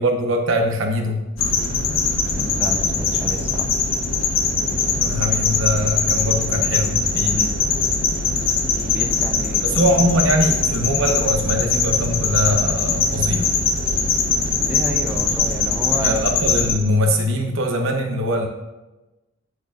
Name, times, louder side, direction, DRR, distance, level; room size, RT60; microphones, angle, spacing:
voice 1, 0.0-1.5 4.8-7.4 9.6-13.5 16.0-18.5, equal, 75° right, 4 dB, 0.9 m, -22 dB
sound 1, 1.4-16.7, left 4 dB, 85° left, 1.0 m, -21 dB
voice 2, 2.3-3.8 7.3-7.6 8.8-9.8 14.6-16.1, equal, 10° right, 1 dB, 0.7 m, -31 dB
11.0 x 4.6 x 2.5 m, 1.0 s
head